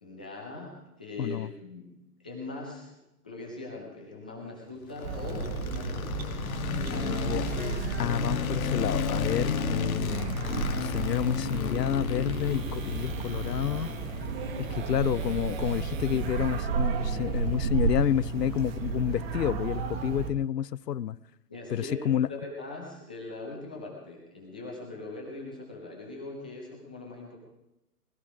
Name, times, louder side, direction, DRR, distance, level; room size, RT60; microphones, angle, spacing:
voice 1, 0.0-1.9 2.2-3.0 3.2-6.3 6.8-7.6 21.5-27.4, left 2 dB, 5° left, -2 dB, 0.4 m, -41 dB
voice 2, 1.2-1.5 7.1-7.4 8.0-10.3 10.8-13.9 14.6-21.2 21.7-22.3, left 10 dB, 80° left, 21 dB, 0.6 m, -29 dB
sound 1, 4.9-19.0, left 8 dB, 60° left, 1.4 m, -35 dB
Academic Hall Atmosphere, 5.0-20.3, right 5 dB, 40° right, 1.5 m, -32 dB
sound 2, 10.4-16.6, right 7 dB, 55° right, 1.6 m, -50 dB
20.0 x 13.0 x 4.9 m, 0.92 s
hypercardioid pair, 135°, 48 cm